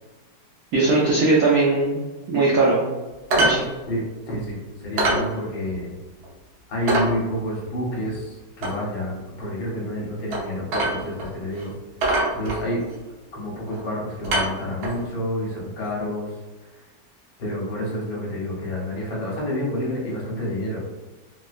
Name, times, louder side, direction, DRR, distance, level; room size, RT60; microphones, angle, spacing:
voice 1, 0.7-2.0 2.3-2.8 3.4-3.6, right 3 dB, 80° right, -4 dB, 0.8 m, -19 dB
sound 1, 3.3-3.6 3.9-4.0 4.4-4.5 5.0-5.3 5.7-5.8 6.2-6.3 6.9-7.1 8.6-8.8 10.3-10.4 10.7-11.3 11.5-11.7 12.0-12.9 13.7-13.9 14.2-15.0 16.0-16.1, right 1 dB, 60° right, 1.1 m, -23 dB
voice 2, 3.9-5.9 6.7-11.7 12.3-12.8 13.3-16.8 17.4-20.8, equal, 70° left, -4 dB, 1.7 m, -29 dB
4.5 x 2.1 x 2.4 m, 1.2 s
omnidirectional pair, 2.2 m